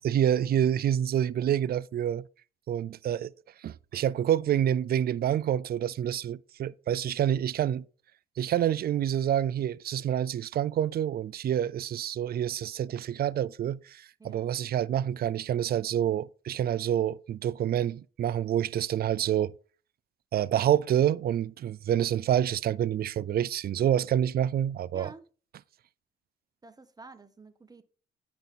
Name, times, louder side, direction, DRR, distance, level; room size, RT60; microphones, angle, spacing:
voice 1, 0.0-2.3 2.7-3.3 3.6-7.8 8.4-19.5 20.3-25.1, right 10 dB, 50° right, 0.4 m, -27 dB
voice 2, 24.9-25.3 26.6-27.8, right 3 dB, 20° right, 0.8 m, -49 dB
8.9 x 5.2 x 4.1 m
cardioid pair, 90°, 20 cm